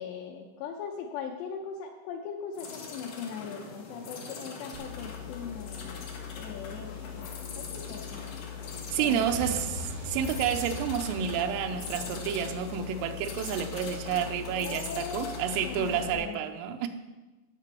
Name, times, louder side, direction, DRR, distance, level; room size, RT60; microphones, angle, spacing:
voice 1, 0.0-6.0 6.4-7.3 7.6-8.3 9.0-9.6 14.6-15.4 15.6-16.4, left 6 dB, 90° left, 1 dB, 2.4 m, -39 dB
sound 1, 2.5-16.2, left 4 dB, 70° left, 2.1 m, -42 dB
sound 2, 4.7-16.2, left 11 dB, 70° right, 2.7 m, -43 dB
voice 2, 8.9-16.9, right 8 dB, 85° right, 6 dB, 3.4 m, -30 dB
sound 3, 9.2-12.3, equal, 45° right, 3.3 m, -41 dB
16.5 x 6.1 x 4.5 m, 1.2 s
omnidirectional pair, 5.8 m